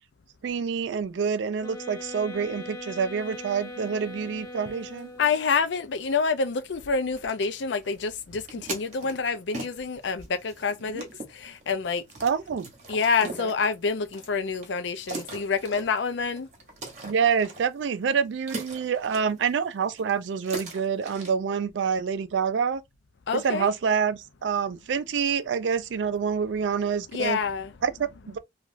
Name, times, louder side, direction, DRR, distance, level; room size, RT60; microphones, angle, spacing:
voice 1, 0.4-5.1 10.9-11.0 12.2-12.7 13.2-13.5 17.0-22.8 23.3-27.4 27.8-28.4, right 6 dB, 70° right, 0.4 m, -27 dB
sound 1, 1.6-5.5, left 2 dB, 20° left, 0.6 m, -40 dB
sound 2, 3.2-21.3, right 3 dB, 40° right, 0.9 m, -44 dB
voice 2, 5.2-11.1 11.3-12.0 12.9-16.5 23.3-23.7 27.1-27.7, left 5 dB, 70° left, 0.5 m, -27 dB
3.0 x 2.4 x 2.5 m
head